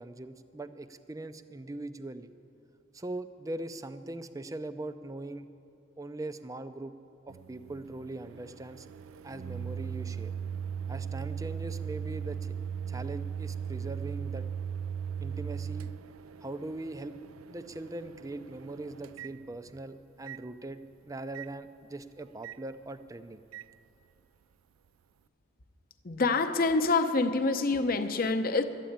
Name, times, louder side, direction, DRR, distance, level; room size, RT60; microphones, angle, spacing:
voice 1, 0.0-2.3 2.9-5.5 6.0-6.9 7.3-8.9 9.2-10.3 10.9-12.5 12.9-14.5 15.2-15.9 16.4-17.2 17.5-23.4, right 2 dB, 15° right, 10 dB, 0.4 m, -41 dB
Microwave oven, 7.3-19.8 20.3-20.4 21.3-21.5 22.4-22.6 23.5-23.7, right 7 dB, 80° right, 0.3 m, -38 dB
voice 2, 26.0-28.6, left 3 dB, 45° left, 7 dB, 0.7 m, -26 dB
12.5 x 9.1 x 8.6 m, 2.6 s
head